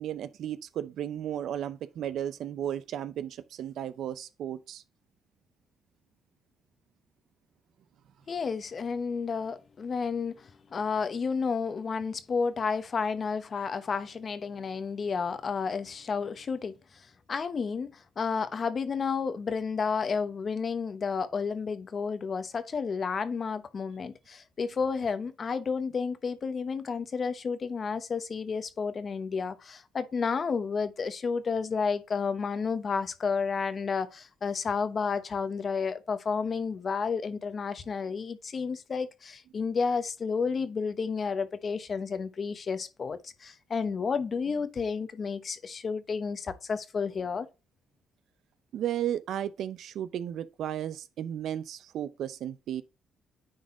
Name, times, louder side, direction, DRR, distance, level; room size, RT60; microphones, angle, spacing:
voice 1, 0.0-4.8 48.7-52.8, right 10 dB, 75° right, 0.6 m, -34 dB
voice 2, 8.3-47.5, left 5 dB, 45° left, 1.0 m, -31 dB
9.7 x 4.0 x 3.7 m
cardioid pair, 90°, 0 cm